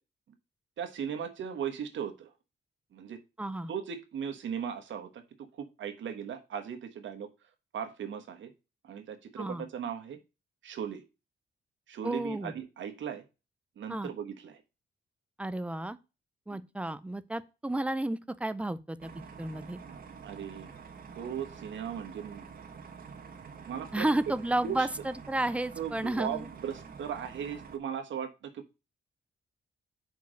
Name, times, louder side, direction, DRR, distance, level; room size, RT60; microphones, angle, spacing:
voice 1, 0.8-2.3 2.9-3.2 3.7-5.2 5.6-7.3 7.7-8.5 8.8-10.2 10.6-11.0 11.9-13.2 13.8-14.6 16.5-16.6 19.8-20.7 21.2-22.4 23.7-24.0 24.6-24.9 25.8-28.8, right 8 dB, 75° right, 1.3 m, -38 dB
voice 2, 3.4-3.7 9.4-9.7 12.0-12.5 13.9-14.1 15.4-16.0 16.5-19.1 19.4-19.8 23.9-26.5, right 1 dB, 5° right, 0.4 m, -32 dB
sound 1, 19.0-27.8, right 5 dB, 50° right, 1.1 m, -48 dB
5.2 x 4.7 x 6.2 m
wide cardioid pair, 145°, 20 cm